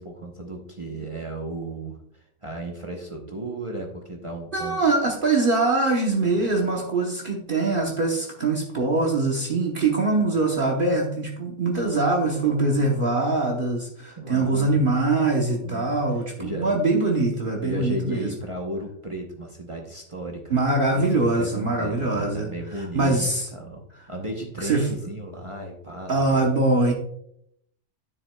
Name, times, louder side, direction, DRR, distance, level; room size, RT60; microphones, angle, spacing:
voice 1, 0.0-4.8 6.2-6.6 11.9-13.0 14.2-14.9 15.6-15.9 16.4-16.7 17.6-23.8 24.1-26.5, right 1 dB, 30° right, 1 dB, 0.8 m, -35 dB
voice 2, 4.5-18.3 20.5-22.5 22.7-23.5 24.6-24.9 26.1-26.9, right 3 dB, 50° right, 0 dB, 1.1 m, -23 dB
10.0 x 7.0 x 2.2 m, 0.73 s
omnidirectional pair, 1.3 m